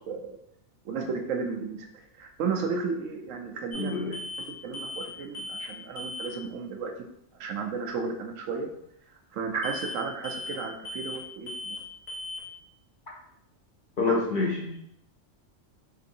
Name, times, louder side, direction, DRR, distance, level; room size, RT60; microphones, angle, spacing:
voice 1, 0.1-0.4 0.8-1.9 2.2-4.0 4.6-6.9 7.4-8.7 9.3-11.8 14.1-14.2, right 5 dB, 80° right, 2 dB, 1.0 m, -33 dB
sound 1, 3.7-3.9 4.1-4.5 4.7-5.1 5.3-5.7 6.0-6.3 9.6-10.0 10.2-10.6 10.9-11.2 11.5-11.8 12.1-12.4, left 1 dB, 85° left, 1.2 m, -37 dB
voice 2, 3.7-4.2 14.0-14.8, left 3 dB, 50° left, -3 dB, 0.7 m, -27 dB
3.9 x 2.5 x 2.7 m, 0.76 s
omnidirectional pair, 1.3 m